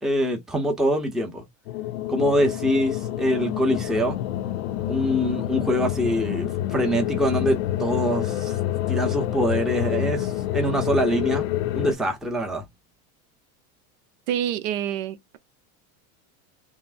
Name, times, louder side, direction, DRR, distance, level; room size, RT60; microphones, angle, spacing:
voice 1, 0.0-1.4 2.1-4.2 4.9-8.6 8.9-11.5 11.7-12.6, equal, ahead, 0.6 m, -24 dB
sound 1, 1.7-11.9, left 13 dB, 60° left, 0.5 m, -27 dB
voice 2, 14.3-15.4, right 10 dB, 65° right, 0.7 m, -27 dB
5.7 x 2.1 x 2.5 m
supercardioid pair, 135°, 41 cm